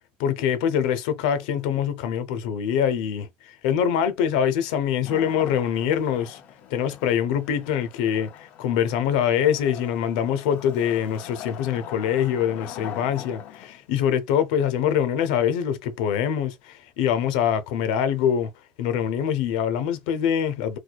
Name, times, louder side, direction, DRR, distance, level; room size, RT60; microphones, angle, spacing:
voice 1, 0.2-6.4 6.7-18.5 18.8-20.8, left 8 dB, 90° left, 0.6 m, -24 dB
Wood, 5.1-13.9, left 10 dB, 40° left, 0.4 m, -42 dB
4.4 x 2.2 x 2.3 m
cardioid pair, 175°, 4 cm